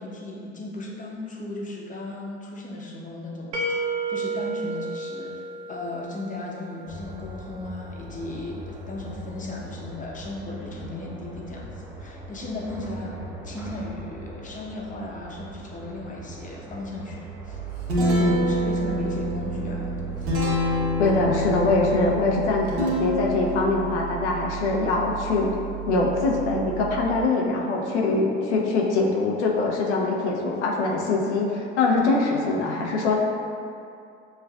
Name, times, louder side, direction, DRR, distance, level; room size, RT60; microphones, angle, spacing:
voice 1, 0.0-3.8 4.1-5.4 5.7-13.2 13.4-17.6 18.2-20.0, left 2 dB, 25° left, -3 dB, 0.9 m, -36 dB
sound 1, 3.5-6.4, right 2 dB, 55° right, 0.6 m, -30 dB
sound 2, 6.9-22.2, right 1 dB, 5° right, 0.5 m, -40 dB
Guitar, 17.4-27.2, equal, 75° right, 1.1 m, -28 dB
voice 2, 21.0-25.5 25.9-33.2, left 3 dB, 85° left, -1 dB, 0.7 m, -23 dB
6.5 x 2.5 x 2.3 m, 2.5 s
hypercardioid pair, 80°, 33 cm